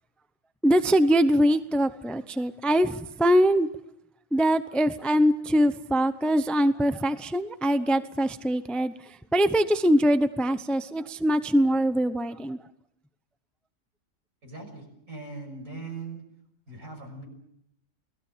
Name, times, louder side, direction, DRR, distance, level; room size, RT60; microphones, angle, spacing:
voice 1, 0.6-3.7 4.3-8.9 9.3-12.6, equal, ahead, 12 dB, 0.7 m, -23 dB
voice 2, 14.4-16.2 16.7-17.3, right 3 dB, 75° right, 3 dB, 6.8 m, -40 dB
29.5 x 19.0 x 7.4 m, 0.78 s
omnidirectional pair, 1.4 m